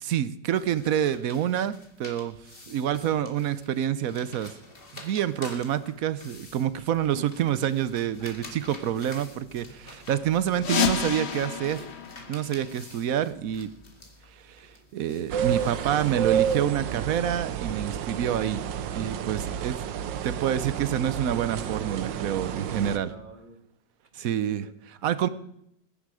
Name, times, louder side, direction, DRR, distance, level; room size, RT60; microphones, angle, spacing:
voice 1, 0.0-2.3 2.7-4.5 4.9-11.8 12.3-13.7 14.4-18.6 18.9-19.7 20.2-23.1 24.1-24.7 25.0-25.3, right 10 dB, 65° right, 15 dB, 1.0 m, -27 dB
sound 1, 0.5-16.2, left 2 dB, 30° left, 2.3 m, -48 dB
sound 2, 10.6-13.2, left 7 dB, 50° left, 0.9 m, -30 dB
sound 3, 15.3-23.0, right 9 dB, 85° right, 1.5 m, -30 dB
voice 2, 22.5-23.6 24.2-25.3, right 3 dB, 25° right, 5 dB, 1.9 m, -48 dB
21.0 x 10.5 x 4.8 m, 0.77 s
omnidirectional pair, 1.9 m